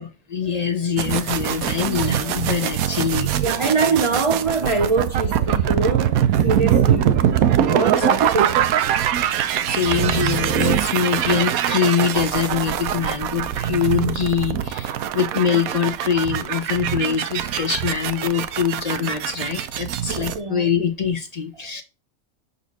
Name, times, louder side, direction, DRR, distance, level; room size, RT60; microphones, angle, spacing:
voice 1, 0.0-3.6 8.0-8.1 9.3-21.8, left 7 dB, 35° left, 0.8 m, -24 dB
sound 1, 1.0-20.4, right 10 dB, 85° right, 1.1 m, -22 dB
voice 2, 3.4-7.2 7.7-8.8 20.1-20.6 21.6-21.7, right 4 dB, 35° right, 0.5 m, -24 dB
6.0 x 4.2 x 4.0 m
omnidirectional pair, 1.5 m